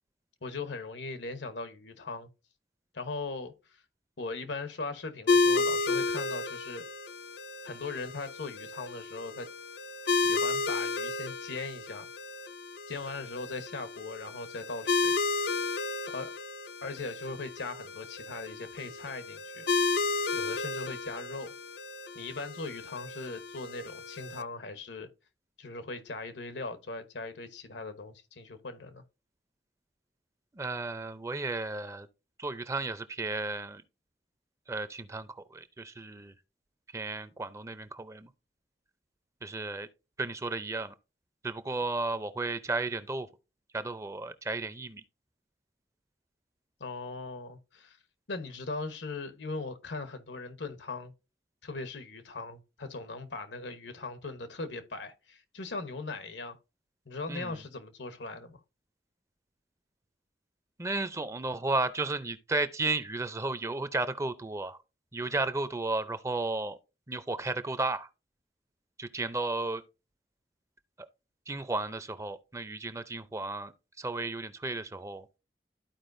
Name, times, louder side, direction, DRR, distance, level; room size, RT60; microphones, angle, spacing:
voice 1, 0.4-2.3 2.9-3.8 4.2-6.8 7.6-9.5 10.2-12.1 12.9-15.1 16.1-16.3 16.8-19.6 20.3-21.5 22.1-25.1 25.6-29.0 46.8-48.0 48.3-51.1 51.6-56.6 57.1-58.6, left 3 dB, 85° left, 1.0 m, -39 dB
sound 1, 5.3-24.4, left 4 dB, 65° left, 0.5 m, -32 dB
voice 2, 30.5-32.1 32.4-33.8 34.7-36.3 36.9-38.3 39.4-39.9 40.2-40.9 41.4-43.3 43.7-45.0 57.3-57.6 60.8-64.8 65.1-66.8 67.1-68.1 69.0-69.8 71.0-71.1 71.5-73.7 74.0-75.3, right 3 dB, 15° right, 0.4 m, -33 dB
13.0 x 4.7 x 2.6 m
head